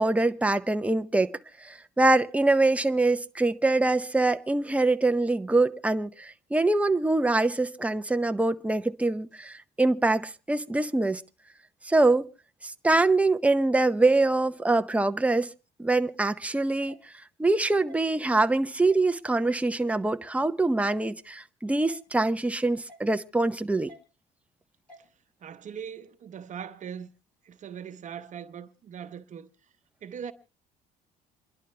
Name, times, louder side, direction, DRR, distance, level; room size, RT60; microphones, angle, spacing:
voice 1, 0.0-1.3 1.6-11.2 11.8-12.3 12.6-15.5 15.8-17.0 17.4-23.9, right 2 dB, 10° right, 0.8 m, -24 dB
sound 1, 16.9-17.0 17.9-18.0 18.9-19.0 19.9-20.0 20.9-21.1 21.9-22.0 22.9-23.1 23.9-24.0 24.9-25.1, left 1 dB, 10° left, 4.3 m, -50 dB
voice 2, 25.4-27.1 27.4-29.5 30.0-30.3, right 8 dB, 45° right, 1.0 m, -40 dB
28.0 x 11.5 x 3.3 m
cardioid pair, 110°, 17 cm